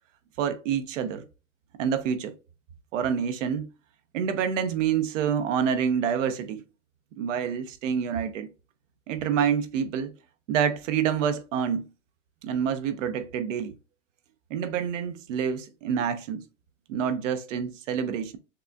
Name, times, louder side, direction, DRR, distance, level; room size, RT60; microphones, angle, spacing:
voice 1, 0.4-1.2 1.8-2.3 2.9-3.7 4.1-6.6 7.2-8.5 9.1-10.1 10.5-11.9 12.4-13.7 14.5-16.4 16.9-18.4, right 7 dB, 75° right, 0.7 m, -27 dB
6.5 x 2.4 x 2.2 m
hypercardioid pair, 120°, 37 cm